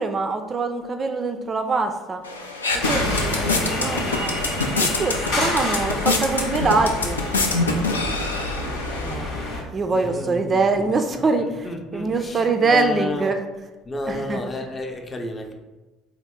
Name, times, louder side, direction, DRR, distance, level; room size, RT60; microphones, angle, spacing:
voice 1, 0.0-2.2 2.7-4.3 5.0-7.2 9.0-9.3 9.7-13.4 14.1-14.4, right 3 dB, 35° right, 6 dB, 0.3 m, -24 dB
sound 1, 2.2-9.1, left 2 dB, 85° left, 0.3 m, -26 dB
sound 2, 2.8-9.6, left 2 dB, 65° left, 0.7 m, -28 dB
voice 2, 9.9-13.4 13.8-15.5, left 2 dB, 25° left, 4 dB, 0.5 m, -32 dB
3.9 x 2.0 x 3.6 m, 1.1 s
figure-of-eight pair, 60°, 0 cm